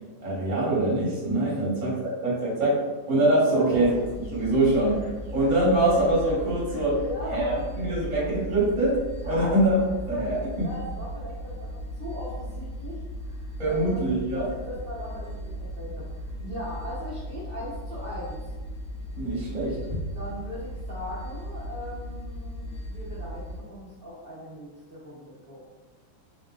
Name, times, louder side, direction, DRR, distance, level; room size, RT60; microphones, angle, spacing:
voice 1, 0.2-2.8 3.1-3.9 4.3-5.0 5.3-7.0 7.3-7.4 7.8-9.0 9.3-9.7 10.1-10.7 13.6-14.4 19.2-20.0, right 1 dB, 25° right, -7 dB, 1.2 m, -24 dB
sound 1, 3.7-23.6, equal, 70° left, 1.8 m, -37 dB
voice 2, 6.9-8.3 9.2-9.6 10.1-14.0 14.3-18.4 20.1-25.6, equal, 55° right, -10 dB, 0.6 m, -39 dB
4.0 x 2.5 x 3.6 m, 1.2 s
omnidirectional pair, 2.4 m